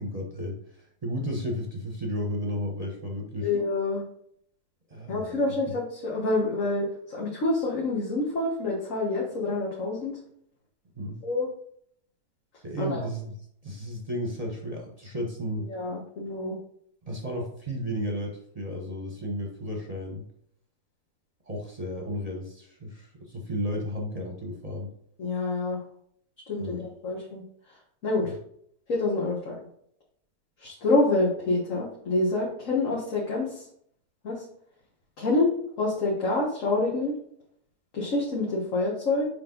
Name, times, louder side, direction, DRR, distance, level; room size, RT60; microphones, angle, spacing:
voice 1, 0.0-3.5 4.9-5.4 11.0-11.2 12.6-13.3 13.6-15.7 17.0-20.2 21.5-24.9 26.6-26.8 28.2-28.3, equal, 25° right, 1 dB, 1.1 m, -33 dB
voice 2, 3.4-4.0 5.1-10.2 11.2-11.5 12.8-13.0 15.7-16.6 25.2-25.8 26.5-27.4 28.0-28.3 28.9-29.6 30.6-33.7 34.2-34.4 35.2-37.2 37.9-39.3, left 2 dB, 60° left, -4 dB, 1.8 m, -27 dB
6.9 x 5.1 x 3.9 m, 0.67 s
omnidirectional pair, 1.6 m